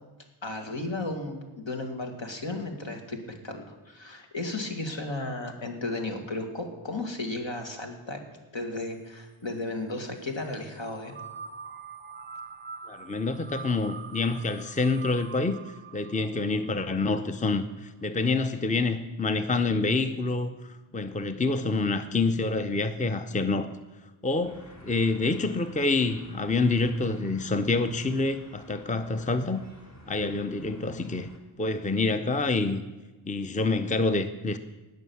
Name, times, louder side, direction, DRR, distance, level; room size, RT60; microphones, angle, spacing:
voice 1, 0.4-3.2 3.4-8.2 8.5-11.2, left 2 dB, 70° left, 3 dB, 2.1 m, -34 dB
sound 1, 10.8-17.6, right 5 dB, 25° right, 0.6 m, -44 dB
voice 2, 12.9-15.6 15.9-23.7 24.2-29.6 30.1-31.3 31.6-32.8 33.3-34.6, left 3 dB, 15° left, 10 dB, 0.6 m, -27 dB
sound 2, 24.4-31.4, equal, 35° left, 2.6 m, -50 dB
18.5 x 6.5 x 7.1 m, 1.2 s
wide cardioid pair, 65°, 47 cm